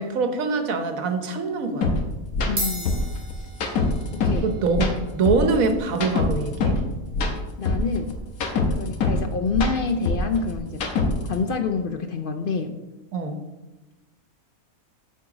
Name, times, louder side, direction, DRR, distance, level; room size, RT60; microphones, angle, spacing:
voice 1, 0.0-1.9 4.4-6.8 13.1-13.4, right 4 dB, 75° right, 6 dB, 1.3 m, -24 dB
sound 1, 1.8-1.9 2.3-2.5 2.8-4.4 4.7-6.8 7.1-9.2 9.5-11.3, left 3 dB, 90° left, 1.5 m, -24 dB
voice 2, 2.5-2.9 3.4-3.5 4.1-4.5 7.6-8.2 8.8-10.8 11.3-12.8, left 4 dB, 60° left, 7 dB, 0.6 m, -27 dB
sound 2, 2.6-11.1, equal, 30° right, 3.0 m, -40 dB
8.6 x 4.7 x 6.0 m, 1.1 s
omnidirectional pair, 1.5 m